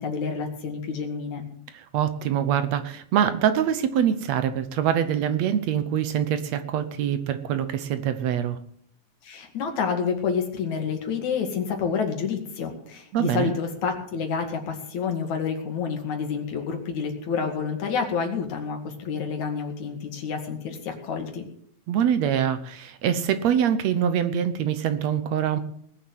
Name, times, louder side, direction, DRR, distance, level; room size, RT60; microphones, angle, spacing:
voice 1, 0.0-1.4 9.2-21.4, left 6 dB, 75° left, 4 dB, 3.5 m, -29 dB
voice 2, 1.7-8.6 13.1-13.5 21.9-25.6, right 9 dB, 70° right, 11 dB, 2.0 m, -24 dB
19.5 x 7.2 x 7.9 m, 0.64 s
omnidirectional pair, 3.4 m